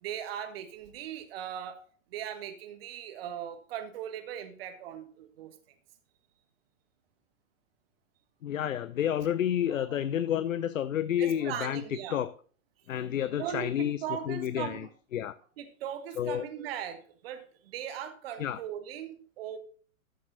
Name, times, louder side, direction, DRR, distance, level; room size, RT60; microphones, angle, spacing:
voice 1, 0.0-1.8 2.1-5.5 9.7-9.8 11.2-12.2 13.4-14.9 15.6-19.6, right 9 dB, 45° right, 8 dB, 1.5 m, -39 dB
voice 2, 8.4-11.8 12.1-12.3 12.9-14.0 14.3-14.9 15.1-15.3 16.2-16.5 18.4-18.6, left 10 dB, 70° left, 15 dB, 0.6 m, -30 dB
13.5 x 7.5 x 2.8 m, 0.43 s
figure-of-eight pair, 105°, 41 cm